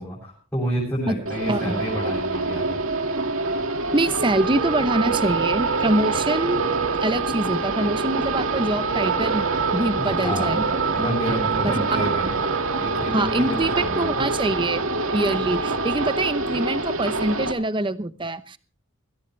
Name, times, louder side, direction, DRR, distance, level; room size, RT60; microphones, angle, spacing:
voice 1, 0.0-2.8 10.0-10.6 10.9-14.2, equal, 10° left, -6 dB, 7.6 m, -29 dB
sound 1, 1.3-17.5, right 3 dB, 70° right, 2.1 m, -25 dB
voice 2, 1.5-1.8 3.9-6.6 7.0-10.8 11.9-12.0 13.1-13.7 14.0-14.8 15.1-18.6, right 2 dB, 25° right, 13 dB, 0.8 m, -24 dB
21.0 x 17.0 x 3.3 m, 0.36 s
head